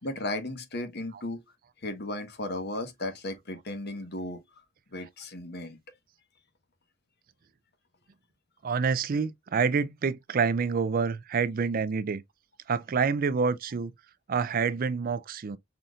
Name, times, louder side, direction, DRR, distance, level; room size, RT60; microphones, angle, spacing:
voice 1, 0.0-1.4 1.8-4.4 4.9-5.8, left 1 dB, 55° left, 1.2 m, -35 dB
voice 2, 8.6-12.2 12.7-13.9 14.3-15.6, right 5 dB, 45° right, 0.4 m, -27 dB
5.6 x 4.0 x 2.4 m
head